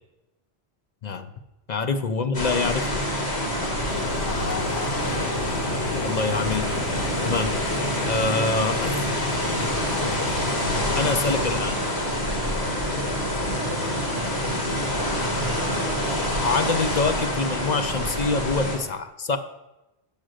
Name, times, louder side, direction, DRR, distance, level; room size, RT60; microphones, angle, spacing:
voice 1, 1.7-3.0 6.0-6.7 7.2-7.6 8.1-9.1 10.9-11.8 16.4-19.4, left 4 dB, 50° left, 8 dB, 0.6 m, -25 dB
sound 1, 2.3-18.8, equal, 70° left, 2.4 m, -26 dB
sound 2, 3.9-11.6, left 4 dB, 90° left, 1.1 m, -34 dB
8.7 x 6.3 x 6.3 m, 0.98 s
omnidirectional pair, 1.1 m